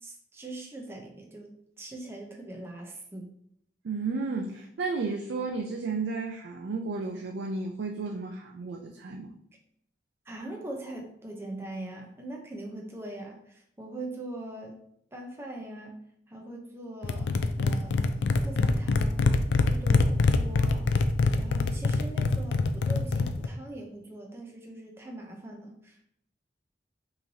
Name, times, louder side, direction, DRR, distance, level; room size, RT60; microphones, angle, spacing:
voice 1, 0.0-3.3 10.3-14.8 15.1-16.0 16.3-18.1 18.4-20.9 21.3-26.1, right 1 dB, 15° right, 0 dB, 0.6 m, -42 dB
voice 2, 3.8-9.4, right 4 dB, 80° right, 2 dB, 0.4 m, -33 dB
sound 1, 17.0-23.5, left 3 dB, 85° left, 0.4 m, -25 dB
5.5 x 3.1 x 2.7 m, 0.71 s
head